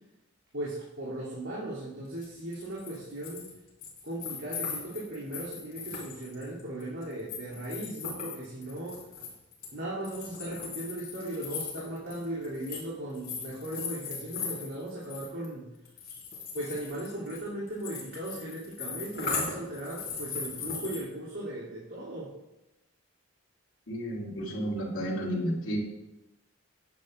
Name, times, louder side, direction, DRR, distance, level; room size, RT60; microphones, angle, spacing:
voice 1, 0.5-3.5 4.0-9.0 9.7-15.7 16.5-22.3, right 1 dB, 70° right, -9 dB, 3.0 m, -37 dB
sound 1, 2.2-2.3 2.5-3.5 3.8-9.7 10.0-12.9 13.1-15.5 15.9-21.0, left 5 dB, 50° left, 3.6 m, -38 dB
voice 2, 23.9-25.8, equal, 75° left, -4 dB, 2.8 m, -32 dB
14.5 x 9.5 x 2.6 m, 0.98 s
head